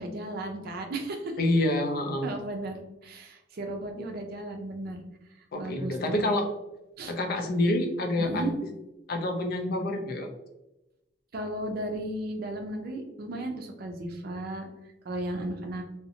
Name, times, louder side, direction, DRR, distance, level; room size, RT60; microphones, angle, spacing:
voice 1, 0.0-1.3 2.2-5.0 5.6-6.2 7.0-7.1 8.2-8.5 11.3-14.7 15.0-15.8, right 1 dB, 55° right, 4 dB, 0.4 m, -35 dB
voice 2, 1.4-2.3 5.5-6.5 7.1-8.5 9.1-10.3, left 1 dB, 55° left, 4 dB, 0.4 m, -27 dB
2.6 x 2.0 x 2.7 m, 0.94 s
head